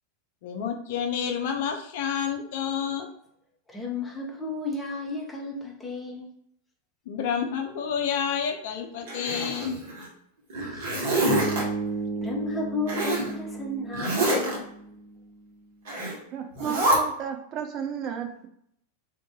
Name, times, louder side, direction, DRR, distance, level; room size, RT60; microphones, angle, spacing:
voice 1, 0.4-3.1 7.1-9.8, left 7 dB, 50° left, 4 dB, 0.5 m, -29 dB
voice 2, 3.7-6.3 10.7-11.2 12.1-14.6, left 3 dB, 5° left, -2 dB, 0.9 m, -33 dB
Zipper (clothing), 9.1-10.1 10.5-11.6 12.9-13.3 13.9-14.6 15.9-16.2 16.6-17.0, right 1 dB, 55° right, 1.2 m, -26 dB
Bass guitar, 11.3-15.4, right 3 dB, 35° left, 1.1 m, -33 dB
voice 3, 16.3-18.5, right 8 dB, 35° right, 5 dB, 0.4 m, -33 dB
2.6 x 2.6 x 3.6 m, 0.71 s
figure-of-eight pair, 90°, 0 cm